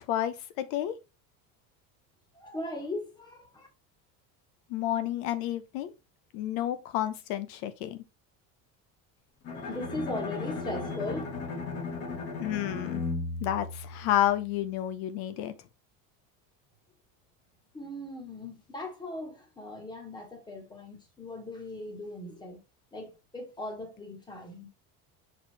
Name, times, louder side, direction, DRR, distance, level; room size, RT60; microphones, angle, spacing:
voice 1, 0.1-0.9 4.7-5.9 6.3-8.0 12.4-13.0 13.4-15.5, left 12 dB, 75° left, 0.9 m, -30 dB
voice 2, 2.3-3.7 9.5-11.2 17.7-22.6 22.9-24.7, left 1 dB, 10° left, 1.5 m, -38 dB
Bowed string instrument, 9.4-14.5, left 3 dB, 35° left, 1.4 m, -36 dB
6.5 x 4.7 x 3.3 m
cardioid pair, 175°, 38 cm